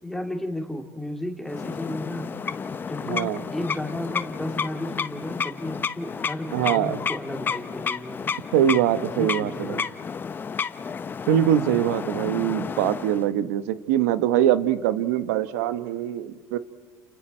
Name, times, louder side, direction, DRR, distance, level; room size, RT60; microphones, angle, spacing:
voice 1, 0.0-2.3 2.9-8.2 9.2-10.0 11.4-11.8, left 1 dB, 5° left, 3 dB, 2.8 m, -33 dB
sound 1, 1.5-13.3, left 6 dB, 25° left, 0.8 m, -31 dB
voice 2, 3.1-3.4 6.5-7.0 8.5-9.8 11.3-16.6, right 11 dB, 85° right, 13 dB, 1.1 m, -23 dB
29.5 x 29.5 x 4.4 m, 1.3 s
supercardioid pair, 110°, 8 cm